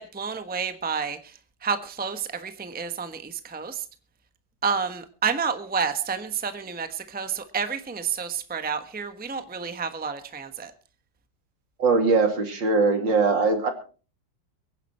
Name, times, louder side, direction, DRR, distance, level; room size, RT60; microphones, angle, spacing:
voice 1, 0.0-1.3 1.6-3.8 4.6-10.7, right 6 dB, 5° right, 9 dB, 1.0 m, -30 dB
voice 2, 11.8-13.7, right 4 dB, 70° right, 6 dB, 3.2 m, -21 dB
23.5 x 10.0 x 4.4 m, 0.37 s
omnidirectional pair, 2.1 m